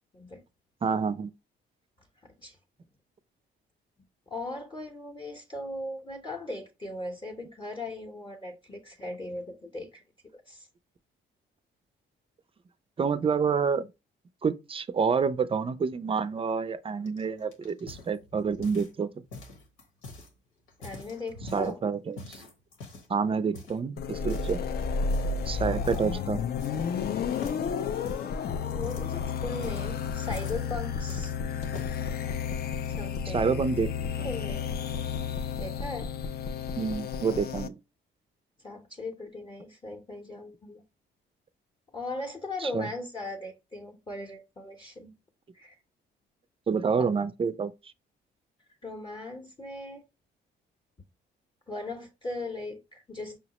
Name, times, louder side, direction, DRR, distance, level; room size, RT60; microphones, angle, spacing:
voice 1, 0.8-1.3 13.0-13.9 14.4-19.1 21.5-22.4 23.1-24.6 25.5-26.4 33.3-34.3 36.8-37.8 42.6-42.9 46.7-47.7, right 5 dB, 30° right, 0.4 m, -28 dB
voice 2, 4.3-10.0 10.5-10.7 20.8-21.8 25.4-26.2 28.7-31.3 32.9-33.5 34.2-34.6 35.6-36.2 38.6-40.8 41.9-45.1 45.5-45.7 48.8-50.0 51.7-53.4, left 2 dB, 25° left, 0.7 m, -38 dB
sound 1, 17.1-19.0 19.3-20.3 20.7-21.7 22.2-23.1 23.5-23.8 24.2-24.6 25.1-25.4 25.8-26.1 26.3-27.0 27.3-30.6 31.1-32.0 32.6-33.2, left 2 dB, 90° left, 1.2 m, -45 dB
sound 2, 24.0-37.7, left 6 dB, 55° left, 0.4 m, -32 dB
5.4 x 2.0 x 2.9 m
cardioid pair, 90°, 20 cm